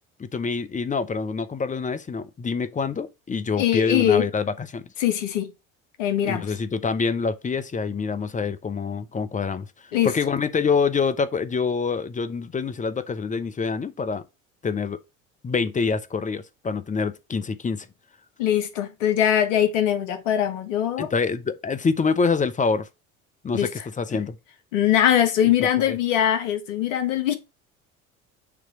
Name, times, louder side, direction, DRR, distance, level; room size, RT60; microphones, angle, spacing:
voice 1, 0.2-4.8 6.2-9.6 10.0-14.2 14.6-15.0 15.4-17.9 21.0-22.9 23.4-23.7 24.0-24.4 25.8-26.0, left 5 dB, 20° left, 0.9 m, -26 dB
voice 2, 3.6-4.2 5.0-5.5 6.0-6.5 9.9-10.1 18.4-21.1 23.5-23.7 24.1-24.2 24.7-27.3, left 10 dB, 65° left, 1.4 m, -22 dB
6.8 x 3.2 x 5.0 m
figure-of-eight pair, 60°, 41 cm